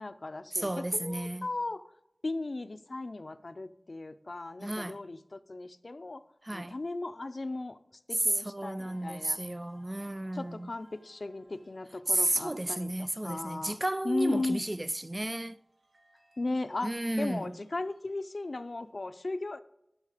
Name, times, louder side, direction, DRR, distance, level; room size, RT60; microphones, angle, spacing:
voice 1, 0.0-1.8 2.2-6.2 6.5-7.8 8.1-9.4 10.3-14.6 16.4-19.6, left 2 dB, 65° left, 0.6 m, -36 dB
voice 2, 0.5-1.5 4.6-5.0 6.4-6.8 8.1-10.7 12.1-15.6 16.8-17.6, right 1 dB, 30° right, 0.4 m, -32 dB
sound 1, 8.8-18.9, right 1 dB, 85° right, 2.7 m, -66 dB
13.0 x 6.4 x 5.0 m
wide cardioid pair, 50°, 0 cm